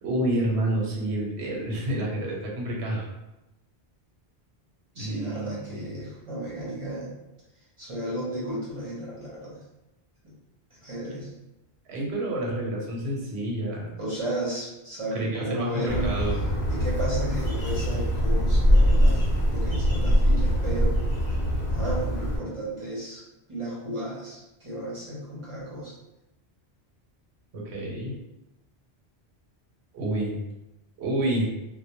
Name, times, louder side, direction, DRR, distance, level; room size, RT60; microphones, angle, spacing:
voice 1, 0.0-3.1 4.9-5.9 11.9-13.9 15.1-16.4 27.5-28.2 29.9-30.4 31.0-31.5, right 1 dB, 85° right, -3 dB, 0.9 m, -29 dB
voice 2, 4.9-7.1 7.8-9.6 10.2-10.3 10.8-11.3 14.0-16.1 16.7-19.2 19.5-21.0 21.7-23.2 23.5-26.0, right 1 dB, 35° right, -7 dB, 0.7 m, -34 dB
Bird, 15.9-22.4, equal, 55° left, 0.8 m, -23 dB
2.2 x 2.0 x 2.8 m, 0.96 s
omnidirectional pair, 1.1 m